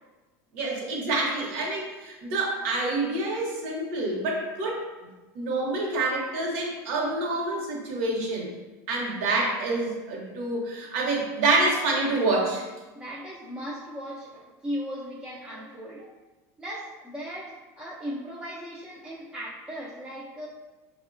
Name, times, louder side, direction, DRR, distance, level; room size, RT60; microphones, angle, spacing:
voice 1, 0.5-4.8 5.3-8.5 8.9-12.7, right 2 dB, 65° right, -1 dB, 0.8 m, -27 dB
voice 2, 12.9-16.1 16.6-20.5, equal, 10° right, -6 dB, 0.3 m, -37 dB
5.2 x 2.1 x 2.5 m, 1.2 s
supercardioid pair, 155°, 8 cm